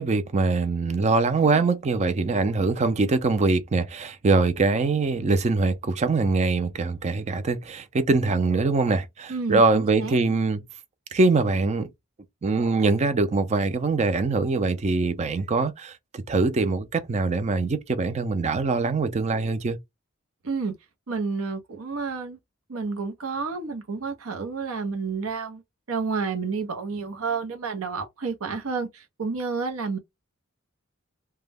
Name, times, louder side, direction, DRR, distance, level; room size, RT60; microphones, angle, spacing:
voice 1, 0.0-10.6 11.1-11.9 12.4-19.8, right 3 dB, 30° right, 0.4 m, -23 dB
voice 2, 9.3-10.2 20.4-20.7 21.1-22.4 22.7-25.6 25.9-30.0, right 4 dB, 85° right, 0.7 m, -30 dB
2.2 x 2.1 x 3.3 m
head